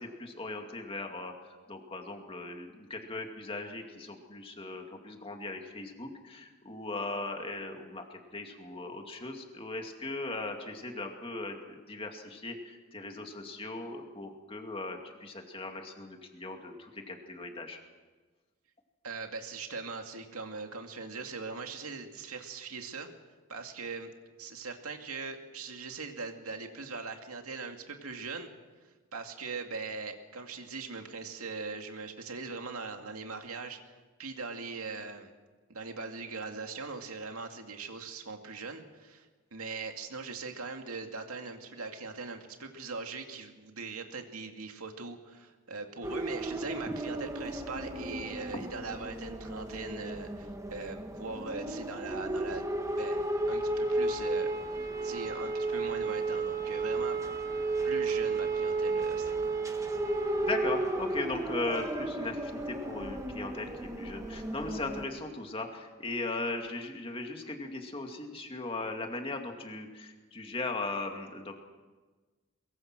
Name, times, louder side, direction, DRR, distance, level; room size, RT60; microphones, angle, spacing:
voice 1, 0.0-17.8 46.9-47.0 60.4-71.5, left 2 dB, 25° left, 3 dB, 2.4 m, -38 dB
voice 2, 19.0-23.1 23.5-24.1 24.4-28.5 29.1-33.8 34.2-35.3 35.7-52.7 53.0-53.2 53.5-54.5 55.0-57.2 57.8-59.5, right 4 dB, 90° right, 4 dB, 2.4 m, -41 dB
sound 1, 46.0-65.1, right 2 dB, 15° right, 1.5 m, -33 dB
22.5 x 22.5 x 6.2 m, 1.3 s
head